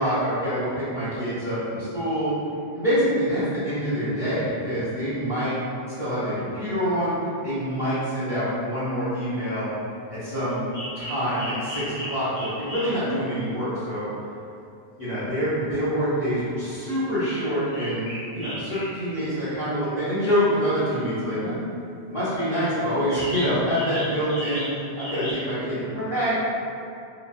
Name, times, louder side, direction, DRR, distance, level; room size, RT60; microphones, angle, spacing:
voice 1, 0.0-2.3 2.7-5.6 6.0-7.1 7.4-9.7 10.1-10.6 10.9-14.1 15.0-18.1 18.3-21.6 22.1-26.4, equal, 35° left, -14 dB, 0.7 m, -26 dB
sound 1, 10.7-13.1 16.3-16.4 17.0-17.1 17.4-19.5 23.1-25.3, equal, 65° left, 1.1 m, -36 dB
2.9 x 2.1 x 2.5 m, 2.6 s
omnidirectional pair, 1.1 m